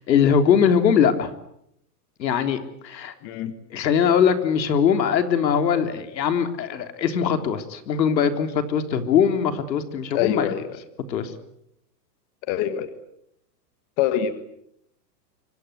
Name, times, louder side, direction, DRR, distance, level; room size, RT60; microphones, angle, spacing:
voice 1, 0.0-1.3 2.2-3.1 3.7-10.5 11.1-11.3, left 7 dB, 90° left, 8 dB, 3.6 m, -21 dB
voice 2, 3.2-3.5 10.1-10.8 12.5-12.9 14.0-14.3, left 10 dB, 30° left, 11 dB, 1.8 m, -25 dB
26.5 x 24.5 x 8.1 m, 0.76 s
supercardioid pair, 170°, 49 cm